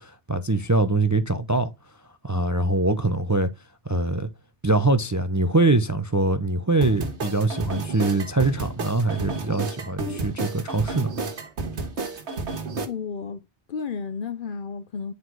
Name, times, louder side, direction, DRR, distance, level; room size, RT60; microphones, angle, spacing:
voice 1, 0.0-1.7 2.2-3.5 3.9-4.3 4.6-11.1, right 2 dB, 20° right, 0.5 m, -23 dB
sound 1, 6.8-12.9, right 3 dB, 75° right, 1.6 m, -31 dB
voice 2, 12.9-15.1, left 5 dB, 55° left, 0.7 m, -33 dB
9.5 x 4.0 x 4.6 m
omnidirectional pair, 1.2 m